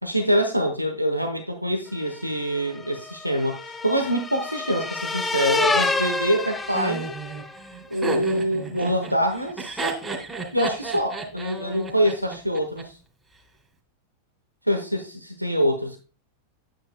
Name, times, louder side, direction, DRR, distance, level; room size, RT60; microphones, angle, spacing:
voice 1, 0.0-7.1 7.9-9.9 10.5-12.9 14.7-16.0, equal, 90° right, 1.0 m, -25 dB
sound 1, 2.1-7.6, left 3 dB, 10° left, 0.7 m, -28 dB
Laughter, 6.7-12.8, right 3 dB, 10° right, 2.5 m, -32 dB
9.5 x 9.2 x 2.2 m
figure-of-eight pair, 90°, 0 cm